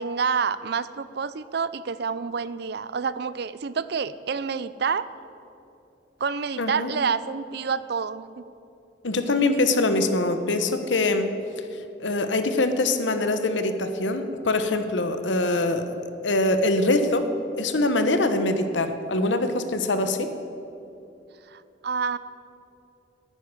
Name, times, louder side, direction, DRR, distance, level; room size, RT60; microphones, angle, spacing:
voice 1, 0.0-5.1 6.2-8.4 21.5-22.2, right 5 dB, 60° right, 16 dB, 0.5 m, -28 dB
voice 2, 6.6-6.9 9.0-11.3 12.0-15.9 16.2-17.3 17.6-20.3, left 2 dB, 80° left, 8 dB, 1.1 m, -23 dB
11.0 x 10.0 x 9.7 m, 2.8 s
head